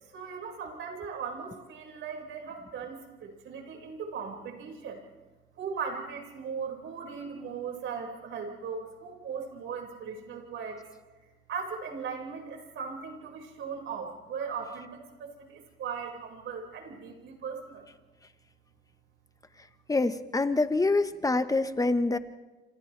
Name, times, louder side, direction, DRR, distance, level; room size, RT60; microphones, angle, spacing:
voice 1, 0.1-5.0 5.6-10.8 11.5-17.8, right 6 dB, 80° right, 1 dB, 5.6 m, -38 dB
voice 2, 19.9-22.2, left 3 dB, 15° left, 10 dB, 1.2 m, -26 dB
28.0 x 27.0 x 3.4 m, 1.2 s
cardioid pair, 90°, 20 cm